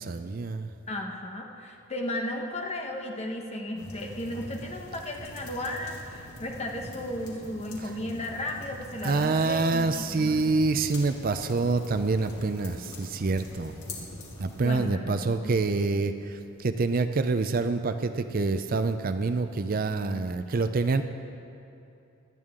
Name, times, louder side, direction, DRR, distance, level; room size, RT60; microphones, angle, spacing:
voice 1, 0.0-0.7 9.0-13.8 14.4-21.0, right 3 dB, 40° right, 9 dB, 0.4 m, -26 dB
voice 2, 0.9-10.4 14.6-15.8, left 1 dB, 30° left, 1 dB, 1.2 m, -35 dB
sound 1, 3.8-14.7, left 1 dB, 90° left, 2.4 m, -43 dB
18.5 x 12.5 x 3.7 m, 2.7 s
head